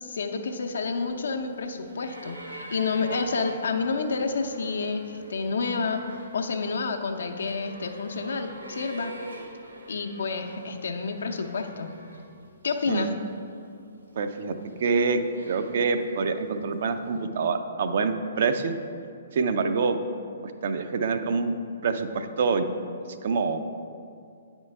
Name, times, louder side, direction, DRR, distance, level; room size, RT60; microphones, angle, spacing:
voice 1, 0.0-9.1 9.9-11.9 12.6-13.1, left 4 dB, 65° left, 5 dB, 0.6 m, -29 dB
sound 1, 0.8-12.4 12.7-13.6 14.4-16.1 17.1-17.2, right 2 dB, 75° right, 1.1 m, -44 dB
voice 2, 12.9-13.2 14.2-15.2 15.5-18.8 19.3-20.0 20.6-21.5 21.8-22.7 23.2-23.6, right 5 dB, 50° right, 8 dB, 0.4 m, -26 dB
9.3 x 4.4 x 3.3 m, 2.4 s
figure-of-eight pair, 125°, 0 cm